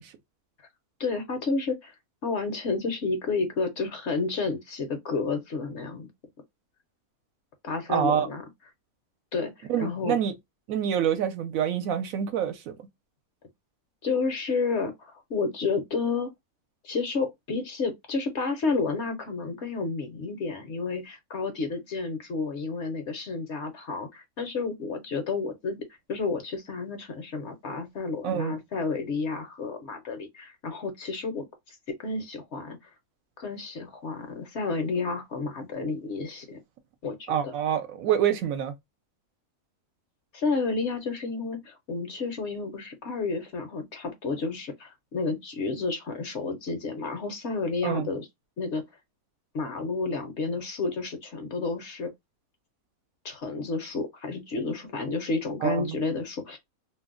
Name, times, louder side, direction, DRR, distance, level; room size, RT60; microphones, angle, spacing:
voice 1, 1.0-2.0 2.2-6.1 7.6-8.5 9.3-10.2 14.0-16.3 16.8-25.8 26.1-32.8 33.4-36.6 37.0-37.5 40.3-48.3 48.6-48.8 49.5-52.1 53.2-56.6, left 4 dB, 60° left, 0.8 m, -31 dB
voice 2, 7.9-8.3 9.7-10.3 10.7-12.8 28.2-28.6 37.3-38.7 47.8-48.1 55.6-56.0, right 9 dB, 70° right, 1.0 m, -26 dB
2.6 x 2.0 x 3.5 m
omnidirectional pair, 1.5 m